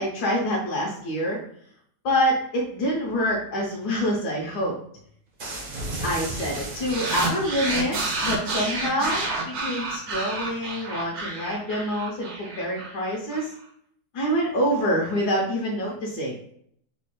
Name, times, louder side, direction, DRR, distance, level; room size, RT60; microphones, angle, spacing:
voice 1, 0.0-1.4 2.0-4.8 6.0-13.5 14.1-16.4, equal, 75° left, -3 dB, 1.3 m, -26 dB
sound 1, 5.4-7.8, right 2 dB, 50° right, 0.7 m, -34 dB
sound 2, 6.9-13.4, right 3 dB, 70° right, 1.2 m, -30 dB
4.1 x 2.3 x 3.0 m, 0.65 s
omnidirectional pair, 1.8 m